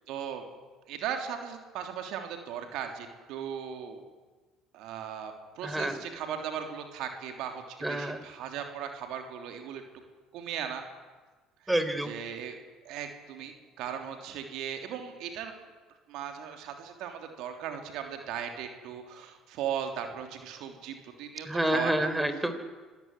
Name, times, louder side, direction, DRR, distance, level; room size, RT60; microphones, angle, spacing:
voice 1, 0.1-0.5 0.9-4.0 4.7-9.8 10.3-10.8 12.0-12.6 12.8-15.5 16.1-22.1, right 8 dB, 70° right, 5 dB, 3.3 m, -37 dB
voice 2, 5.6-6.0 7.8-8.2 11.7-12.1 21.4-22.5, right 1 dB, 10° right, 10 dB, 3.8 m, -28 dB
25.5 x 15.5 x 9.9 m, 1.3 s
hypercardioid pair, 70°, 0 cm